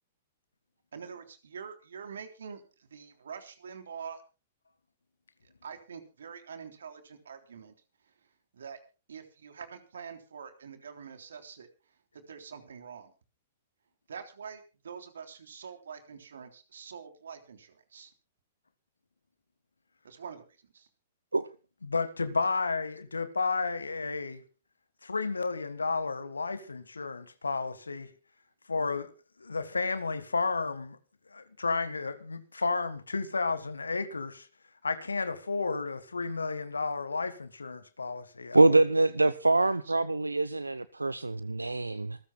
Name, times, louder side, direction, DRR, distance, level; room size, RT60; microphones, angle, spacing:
voice 1, 0.9-4.2 5.4-7.7 8.0-8.8 9.1-11.7 12.1-13.1 14.1-18.1 20.0-20.9 39.8-39.9, right 6 dB, 70° right, 3.4 m, -45 dB
voice 2, 21.8-24.4 25.0-28.1 28.7-29.1 29.4-31.0 31.3-34.5 34.8-38.8, left 4 dB, 80° left, 1.8 m, -32 dB
voice 3, 38.5-42.2, right 2 dB, 85° right, 0.7 m, -24 dB
26.5 x 14.0 x 2.3 m
figure-of-eight pair, 110°, 0 cm